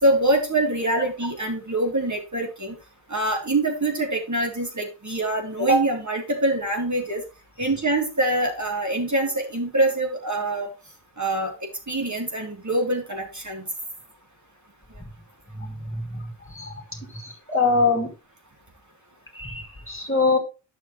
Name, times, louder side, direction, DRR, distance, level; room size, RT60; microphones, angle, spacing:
voice 1, 0.0-2.8 3.1-7.2 7.6-10.7 11.2-11.5 11.9-13.6, right 1 dB, 35° right, 1 dB, 3.5 m, -24 dB
voice 2, 17.1-18.1 19.3-20.4, left 4 dB, 25° left, 2 dB, 2.7 m, -23 dB
11.0 x 6.4 x 3.2 m, 0.30 s
wide cardioid pair, 55°, 47 cm